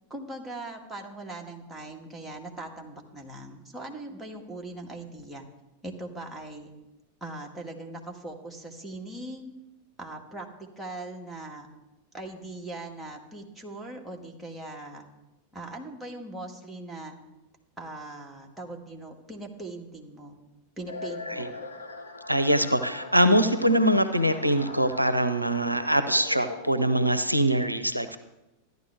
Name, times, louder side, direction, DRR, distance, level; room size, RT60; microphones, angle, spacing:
voice 1, 0.1-5.4 5.8-6.7 7.2-9.5 10.0-11.7 12.1-15.1 15.5-17.2 17.8-20.4 20.8-21.5, right 2 dB, ahead, -1 dB, 1.7 m, -40 dB
sound 1, 20.9-27.1, left 3 dB, 75° left, 2.2 m, -40 dB
voice 2, 22.3-28.2, right 1 dB, 85° right, 11 dB, 0.6 m, -23 dB
14.0 x 11.0 x 3.4 m, 0.96 s
figure-of-eight pair, 90°, 0 cm